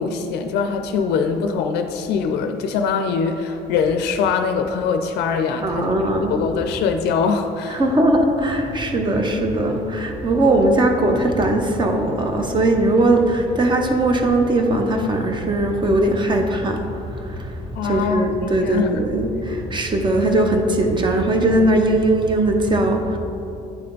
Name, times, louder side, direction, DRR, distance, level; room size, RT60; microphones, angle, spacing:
voice 1, 0.0-5.9 6.3-7.8 17.8-18.3 18.6-18.9, left 5 dB, 80° left, 6 dB, 0.4 m, -22 dB
voice 2, 5.6-6.4 7.7-23.2, right 1 dB, 25° right, 4 dB, 0.7 m, -19 dB
9.8 x 3.3 x 3.8 m, 2.9 s
cardioid pair, 110°, 17 cm